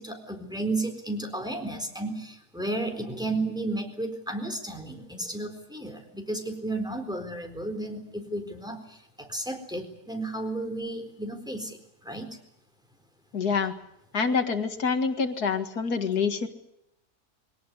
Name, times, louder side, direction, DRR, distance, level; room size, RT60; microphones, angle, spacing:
voice 1, 0.0-11.8 12.0-12.3, right 2 dB, ahead, 4 dB, 4.1 m, -33 dB
voice 2, 13.3-13.8 14.1-16.5, left 5 dB, 75° left, 7 dB, 2.4 m, -26 dB
23.0 x 18.0 x 9.9 m, 0.81 s
omnidirectional pair, 1.7 m